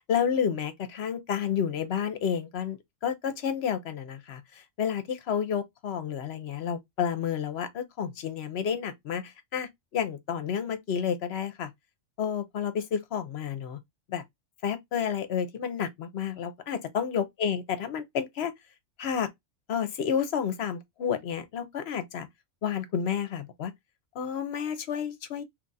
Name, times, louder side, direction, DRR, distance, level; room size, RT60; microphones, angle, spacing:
voice 1, 0.1-2.8 3.0-4.4 4.8-11.7 12.2-13.8 14.1-14.2 14.6-18.5 19.0-19.3 19.7-22.3 22.6-23.7 24.2-25.4, left 8 dB, 60° left, 0.9 m, -30 dB
3.1 x 2.4 x 3.9 m
omnidirectional pair, 1.3 m